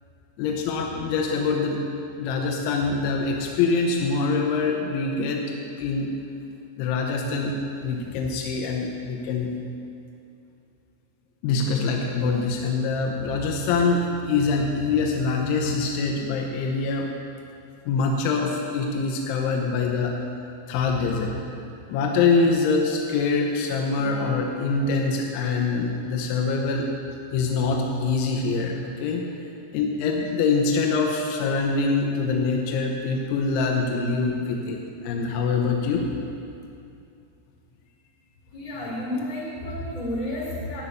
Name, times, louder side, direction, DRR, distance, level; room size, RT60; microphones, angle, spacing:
voice 1, 0.4-1.8 2.2-5.4 5.8-6.1 6.8-7.5 7.8-9.5 11.4-17.1 17.9-20.1 20.7-21.4 21.9-26.9 27.3-29.2 29.7-34.8 35.0-36.1, left 4 dB, 85° left, 1 dB, 3.2 m, -24 dB
voice 2, 24.0-24.3 38.5-40.8, left 1 dB, 25° left, -6 dB, 2.3 m, -32 dB
13.0 x 5.3 x 8.4 m, 2.6 s
omnidirectional pair, 5.4 m